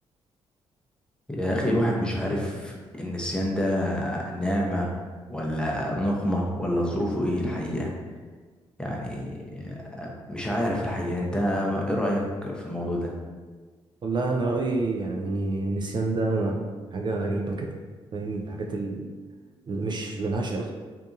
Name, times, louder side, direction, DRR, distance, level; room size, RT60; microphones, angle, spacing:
voice 1, 1.3-5.0 5.3-7.9 8.8-13.1, equal, 10° left, -2 dB, 0.6 m, -27 dB
voice 2, 14.0-16.6 16.9-17.7 18.1-19.1 19.7-20.7, right 3 dB, 45° right, 0 dB, 0.4 m, -28 dB
2.7 x 2.5 x 2.4 m, 1.4 s
supercardioid pair, 60°, 11 cm